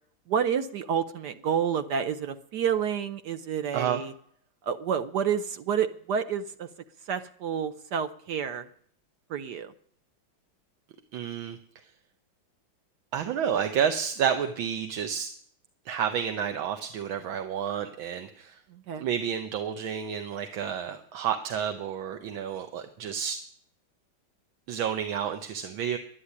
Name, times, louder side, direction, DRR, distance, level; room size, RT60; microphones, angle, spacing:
voice 1, 0.3-4.1 4.7-6.7 7.1-8.7 9.3-9.7 18.7-19.0, right 7 dB, 65° right, 10 dB, 1.2 m, -29 dB
voice 2, 11.1-11.6 13.1-15.3 15.8-18.6 19.0-23.4 24.7-26.0, right 8 dB, 80° right, 7 dB, 1.7 m, -30 dB
11.5 x 10.0 x 9.7 m, 0.63 s
omnidirectional pair, 2.2 m